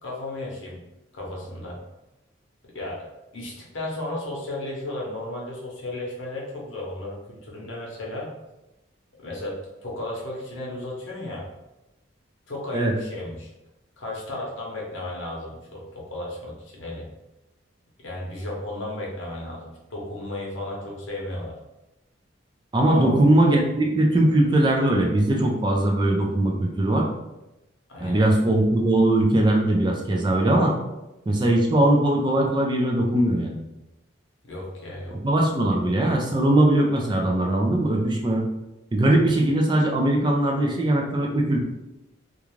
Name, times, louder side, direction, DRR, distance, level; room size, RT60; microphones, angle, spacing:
voice 1, 0.0-0.8 1.1-1.8 2.7-3.1 3.3-8.3 9.2-11.5 12.5-13.5 14.0-17.1 18.0-21.6 22.9-23.2 27.9-28.3 34.5-35.2 35.7-35.8 39.2-39.4, left 1 dB, 75° left, -2 dB, 0.8 m, -34 dB
voice 2, 22.7-27.1 28.0-30.8 31.3-33.6 35.2-38.4 38.9-41.6, right 1 dB, 25° right, 1 dB, 0.3 m, -20 dB
2.4 x 2.3 x 3.0 m, 0.97 s
head